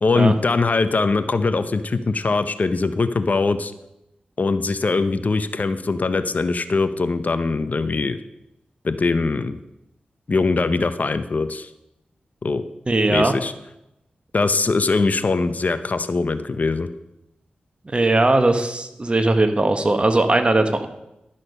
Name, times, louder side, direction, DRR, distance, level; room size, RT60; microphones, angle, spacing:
voice 1, 0.0-3.7 4.4-8.2 8.8-9.6 10.3-11.7 12.4-12.6 13.1-13.5 14.3-16.9, left 3 dB, 55° left, 12 dB, 0.6 m, -21 dB
voice 2, 12.9-13.3 17.9-20.9, right 2 dB, 35° right, 8 dB, 1.1 m, -19 dB
11.5 x 6.5 x 5.4 m, 0.89 s
cardioid pair, 50°, 3 cm